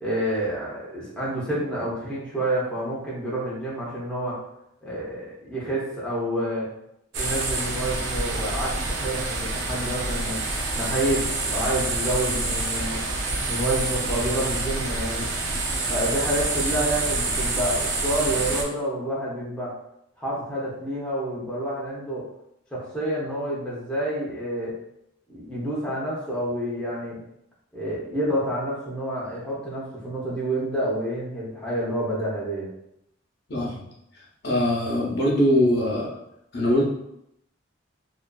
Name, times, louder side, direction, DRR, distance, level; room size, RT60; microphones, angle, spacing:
voice 1, 0.0-4.4 4.8-6.7 7.1-10.4 10.7-13.0 13.5-15.3 15.9-19.7 20.2-22.2 22.7-24.7 25.3-27.2 27.7-32.7, right 1 dB, 5° left, -8 dB, 0.6 m, -28 dB
sound 1, 7.1-18.6, right 2 dB, 85° right, 0.5 m, -27 dB
voice 2, 33.5-33.8 34.4-36.1 36.5-36.8, equal, 55° left, -4 dB, 0.6 m, -22 dB
2.4 x 2.4 x 2.2 m, 0.79 s
head